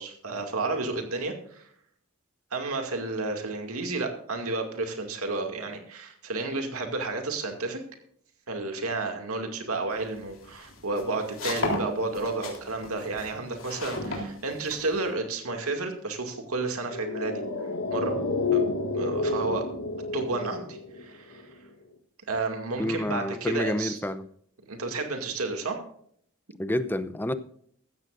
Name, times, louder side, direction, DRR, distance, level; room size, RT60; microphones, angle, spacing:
voice 1, 0.0-1.6 2.5-7.8 8.5-17.4 17.9-18.2 18.5-18.6 18.9-19.7 20.1-21.4 22.3-24.0 24.7-25.8, right 3 dB, 90° right, 2.3 m, -31 dB
sound 1, 10.0-15.1, left 2 dB, 65° left, 3.6 m, -34 dB
sound 2, 16.9-21.4 21.7-21.8, left 3 dB, 85° left, 2.0 m, -29 dB
voice 2, 22.8-24.3 26.6-27.3, left 1 dB, 10° left, 0.6 m, -28 dB
15.5 x 13.5 x 2.6 m
head